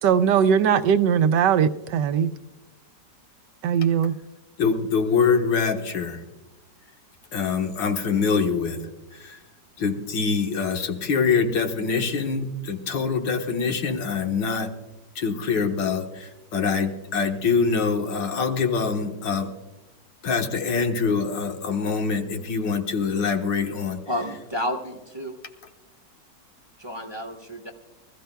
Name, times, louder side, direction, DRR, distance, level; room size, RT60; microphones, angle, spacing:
voice 1, 0.0-2.3 3.6-4.1, right 8 dB, 80° right, 1.2 m, -20 dB
voice 2, 4.6-6.2 7.3-9.4 9.8-14.7 15.2-19.5 20.2-24.3, left 5 dB, 80° left, 1.9 m, -24 dB
voice 3, 24.1-25.4 26.8-27.7, equal, 20° right, 0.8 m, -31 dB
25.0 x 14.5 x 2.2 m
omnidirectional pair, 1.9 m